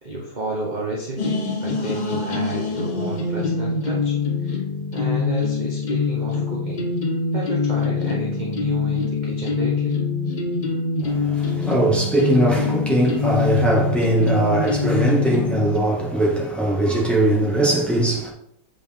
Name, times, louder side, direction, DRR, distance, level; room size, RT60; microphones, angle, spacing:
voice 1, 0.0-4.2 4.4-4.6 4.9-6.9 7.3-10.0, right 2 dB, 30° right, 1.2 m, -31 dB
sound 1, 1.2-15.8, left 4 dB, 40° left, 0.6 m, -24 dB
voice 2, 11.0-18.3, right 1 dB, ahead, 1.8 m, -20 dB
8.0 x 5.3 x 3.7 m
omnidirectional pair, 1.9 m